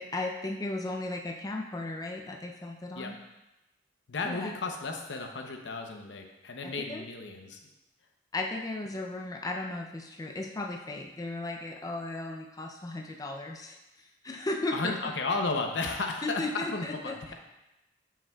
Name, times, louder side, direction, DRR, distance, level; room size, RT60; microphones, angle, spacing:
voice 1, 0.0-3.2 4.2-4.5 6.6-7.0 8.3-13.8 14.2-14.9 16.2-17.3, left 2 dB, 20° left, 1 dB, 0.5 m, -35 dB
voice 2, 4.1-7.6 14.7-17.3, left 3 dB, 85° left, 3 dB, 0.7 m, -34 dB
7.3 x 5.7 x 2.3 m, 0.96 s
head